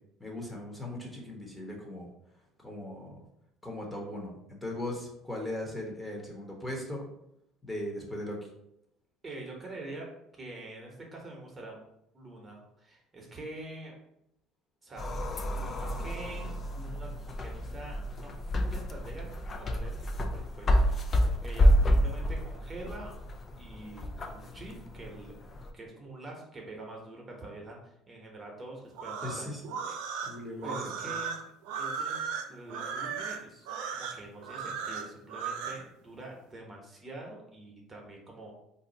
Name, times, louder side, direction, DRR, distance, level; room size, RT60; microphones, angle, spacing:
voice 1, 0.2-2.1 2.6-3.2 3.6-4.3 4.6-7.0 7.6-8.4 29.2-29.6 29.9-30.0 30.2-30.8 31.0-31.1, left 1 dB, 10° left, -1 dB, 0.9 m, -38 dB
voice 2, 9.2-10.1 10.4-11.9 12.1-14.0 14.8-15.1 15.6-21.1 21.4-23.1 23.6-25.3 25.7-29.6 30.6-38.5, right 2 dB, 25° right, 0 dB, 0.9 m, -45 dB
sound 1, 15.0-25.7, equal, 35° left, 0.4 m, -29 dB
sound 2, 28.9-35.8, right 6 dB, 75° right, 0.4 m, -36 dB
2.6 x 2.3 x 4.0 m, 0.80 s
supercardioid pair, 80°, 0 cm